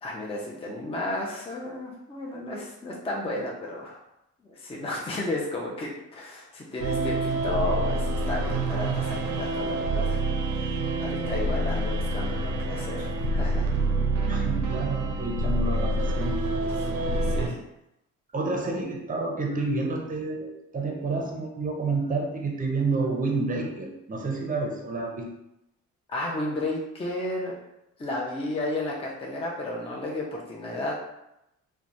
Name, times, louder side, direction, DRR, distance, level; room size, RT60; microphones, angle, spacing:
voice 1, 0.0-4.0 4.4-10.2 10.5-13.8 16.8-17.6 26.1-27.5 28.0-30.9, left 1 dB, 20° left, -3 dB, 0.5 m, -33 dB
sound 1, 6.8-17.5, right 2 dB, 75° right, 0.5 m, -27 dB
voice 2, 14.3-16.4 17.3-17.5 18.3-25.3, right 3 dB, 30° right, 0 dB, 0.7 m, -29 dB
2.9 x 2.2 x 2.5 m, 0.85 s
cardioid pair, 90°, 30 cm